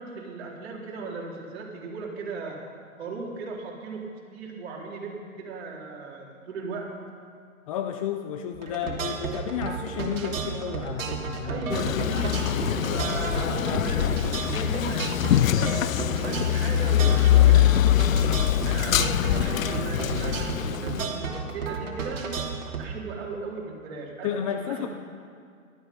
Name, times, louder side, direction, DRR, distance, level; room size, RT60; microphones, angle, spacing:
voice 1, 0.0-2.6 3.0-6.9 11.4-15.1 15.4-17.8 18.6-22.3 22.8-24.9, right 3 dB, 45° right, -2 dB, 4.1 m, -37 dB
voice 2, 7.7-12.7 24.2-24.9, left 9 dB, 25° left, 6 dB, 0.6 m, -32 dB
sound 1, 8.5-22.8, right 5 dB, 65° right, 2.9 m, -33 dB
Male speech man speaking, 11.7-21.1, left 12 dB, 75° left, 0.5 m, -23 dB
18.5 x 13.0 x 5.6 m, 2.2 s
hypercardioid pair, 135°, 41 cm